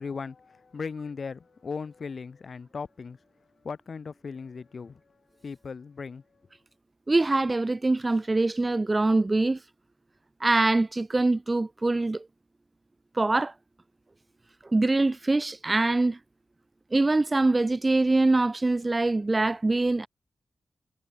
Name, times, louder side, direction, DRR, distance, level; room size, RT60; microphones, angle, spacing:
voice 1, 0.0-3.2 3.6-5.0 5.4-6.2, left 5 dB, 45° left, 1.1 m, -37 dB
voice 2, 7.1-9.6 10.4-12.3 13.2-13.5 14.6-16.2 16.9-20.1, right 2 dB, 20° right, 0.3 m, -24 dB
wide cardioid pair, 170°, 0 cm